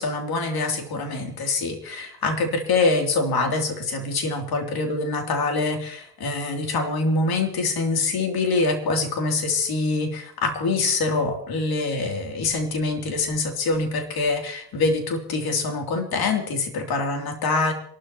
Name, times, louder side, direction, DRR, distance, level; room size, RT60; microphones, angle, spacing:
voice 1, 0.0-17.7, left 3 dB, 45° left, 3 dB, 3.1 m, -25 dB
27.5 x 12.0 x 3.0 m, 0.67 s
hypercardioid pair, 75°, 50 cm